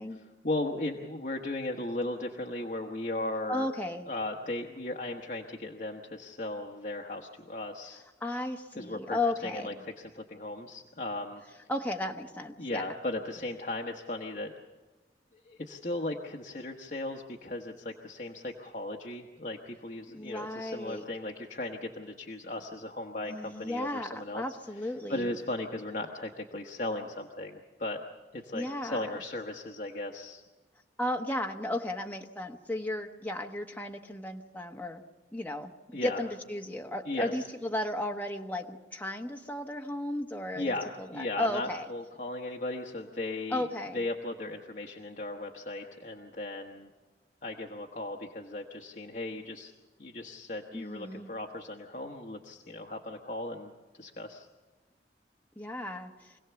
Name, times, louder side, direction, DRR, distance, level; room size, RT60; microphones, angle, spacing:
voice 1, 0.1-3.7 4.1-8.0 8.8-11.4 12.6-14.5 15.4-24.4 25.1-28.0 28.3-30.4 35.9-36.2 37.1-37.3 40.5-43.6 43.9-46.9 47.4-49.7 50.0-53.7 54.0-54.5, left 2 dB, 45° left, 1 dB, 1.2 m, -37 dB
voice 2, 3.5-4.1 8.2-9.7 11.7-12.9 20.1-21.0 23.2-25.3 28.5-29.1 31.0-35.0 35.3-35.7 36.0-41.9 43.5-44.0 50.7-51.3 55.6-56.4, left 1 dB, 10° left, 2 dB, 1.2 m, -35 dB
25.5 x 17.5 x 7.0 m, 1.2 s
head